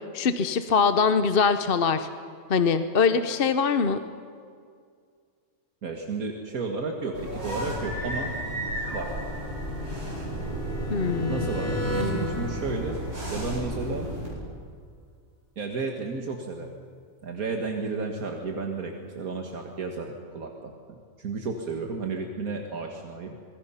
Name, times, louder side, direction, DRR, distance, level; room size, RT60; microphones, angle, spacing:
voice 1, 0.1-2.1 2.5-4.0 10.9-11.5, left 5 dB, 45° left, 10 dB, 0.9 m, -23 dB
voice 2, 5.8-8.3 8.9-9.1 11.3-14.1 15.6-16.8 17.2-23.4, right 4 dB, 75° right, 2 dB, 2.1 m, -33 dB
sound 1, 7.1-14.3, equal, 45° right, 8.3 m, -33 dB
sound 2, 8.0-13.7, equal, 10° left, 4.1 m, -35 dB
26.5 x 22.0 x 5.7 m, 2.1 s
omnidirectional pair, 1.5 m